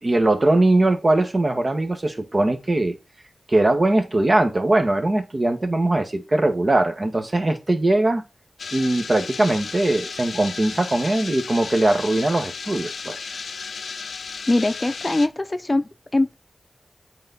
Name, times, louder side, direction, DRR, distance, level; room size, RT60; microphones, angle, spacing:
voice 1, 0.0-2.9 3.5-8.2 8.7-13.3, right 2 dB, 45° right, 1.6 m, -20 dB
sound 1, 8.6-15.3, left 5 dB, 90° left, 0.5 m, -34 dB
voice 2, 14.5-16.3, left 2 dB, 35° left, 0.7 m, -22 dB
8.6 x 4.1 x 4.1 m
cardioid pair, 40°, 0 cm